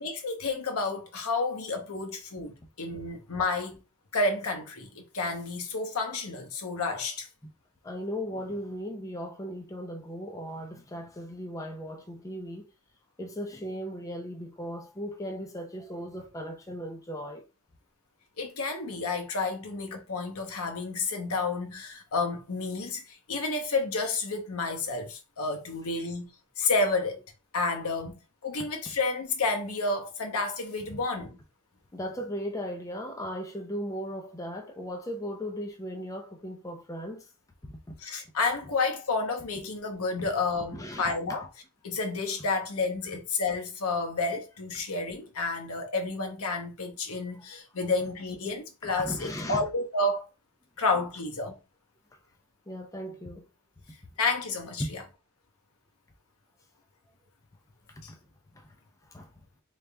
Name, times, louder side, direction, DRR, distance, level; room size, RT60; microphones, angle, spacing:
voice 1, 0.0-3.8 4.1-7.3 18.4-26.3 26.6-27.2 27.5-31.4 38.0-41.5 41.8-50.3 50.8-51.6 54.2-55.0 58.0-58.1, left 3 dB, 70° left, 0.9 m, -30 dB
voice 2, 7.8-12.7 13.2-17.4 25.9-26.1 30.9-31.0 31.9-37.3 37.6-37.8 40.2-40.3 40.7-41.0 47.1-47.4 48.8-49.6 52.7-53.4 54.8-54.9 57.9-58.2 58.5-58.7 59.0-59.4, equal, 15° left, 0.5 m, -37 dB
3.9 x 3.3 x 2.3 m
head